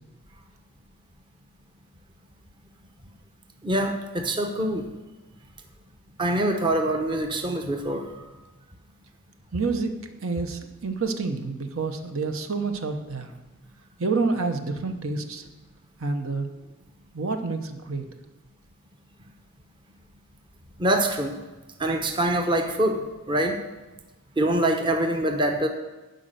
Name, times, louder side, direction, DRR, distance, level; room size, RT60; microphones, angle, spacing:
voice 1, 3.6-4.8 6.2-8.2 20.8-21.4 21.8-23.6 24.4-25.7, right 1 dB, 20° right, 4 dB, 0.8 m, -24 dB
voice 2, 9.5-9.9 10.2-13.3 14.0-15.4 16.0-16.5 17.1-18.0, right 4 dB, 65° right, 6 dB, 1.0 m, -28 dB
12.0 x 5.2 x 7.9 m, 1.1 s
head